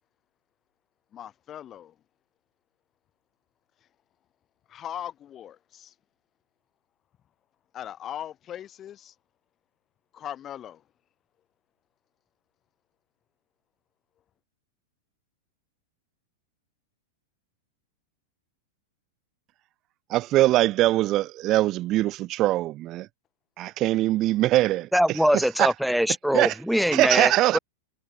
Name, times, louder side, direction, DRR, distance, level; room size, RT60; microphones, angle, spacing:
voice 1, 1.1-1.9 4.7-5.9 7.7-9.1 10.1-10.8, left 10 dB, 25° left, 2.0 m, -39 dB
voice 2, 20.1-23.1 23.6-24.9 25.3-25.7 26.3-26.5 26.9-27.6, right 16 dB, 35° right, 1.0 m, -22 dB
voice 3, 24.9-27.6, equal, ahead, 1.0 m, -23 dB
hypercardioid pair, 135°, 0 cm